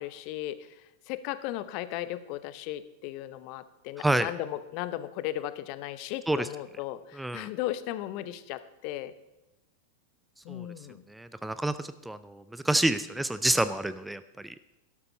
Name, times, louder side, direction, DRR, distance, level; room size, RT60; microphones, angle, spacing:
voice 1, 0.0-9.1 10.4-11.0, left 14 dB, 45° left, 14 dB, 0.8 m, -36 dB
voice 2, 4.0-4.3 6.3-6.5 7.2-7.5 10.5-10.7 11.1-14.5, right 1 dB, 5° right, 13 dB, 0.5 m, -28 dB
12.5 x 12.0 x 4.4 m, 0.97 s
figure-of-eight pair, 90°, 0 cm